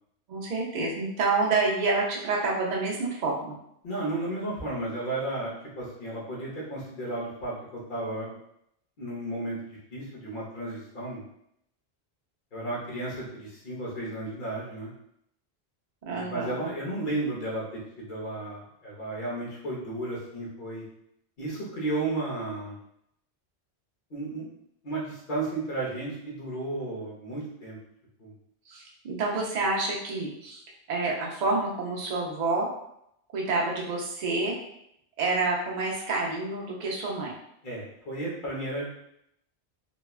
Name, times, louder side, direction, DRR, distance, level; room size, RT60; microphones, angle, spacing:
voice 1, 0.3-3.6 16.0-16.6 28.7-30.6 30.9-32.7 33.3-34.5 35.2-37.3, right 3 dB, 50° right, -2 dB, 0.6 m, -28 dB
voice 2, 3.8-8.4 9.0-11.2 12.5-14.9 16.1-20.8 21.4-22.8 24.1-24.5 24.8-27.8 28.2-28.3 37.6-38.9, right 2 dB, 50° left, -5 dB, 1.0 m, -33 dB
2.9 x 2.2 x 2.3 m, 0.76 s
omnidirectional pair, 1.1 m